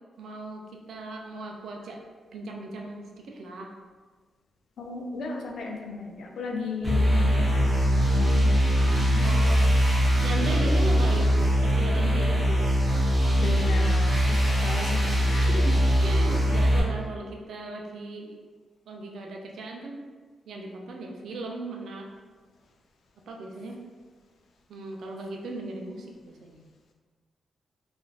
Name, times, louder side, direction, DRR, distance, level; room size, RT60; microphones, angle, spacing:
voice 1, 0.2-2.0 2.3-3.7 9.2-9.6 10.2-11.3 11.6-12.7 15.5-18.4 18.9-20.0 20.5-22.2 23.3-23.8 24.7-26.6, right 2 dB, 80° right, 1 dB, 0.4 m, -37 dB
voice 2, 4.8-7.7 7.9-8.5 8.8-9.3 13.4-15.6, left 4 dB, 75° left, 1 dB, 0.4 m, -35 dB
sound 1, 6.8-16.8, equal, 5° right, 1.2 m, -22 dB
3.2 x 2.4 x 2.4 m, 1.4 s
cardioid pair, 120°, 0 cm